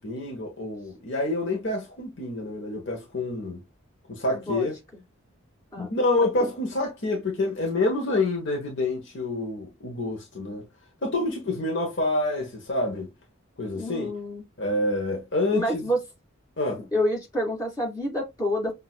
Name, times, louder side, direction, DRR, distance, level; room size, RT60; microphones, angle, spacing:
voice 1, 0.0-3.6 4.1-4.7 5.8-10.6 11.0-13.1 13.6-14.1 14.6-15.8 16.6-16.8, left 2 dB, 55° left, 1.1 m, -27 dB
voice 2, 4.3-4.7 5.7-5.9 13.7-14.4 15.5-16.0 16.9-18.7, equal, 15° left, 2.6 m, -28 dB
6.2 x 2.7 x 2.3 m
head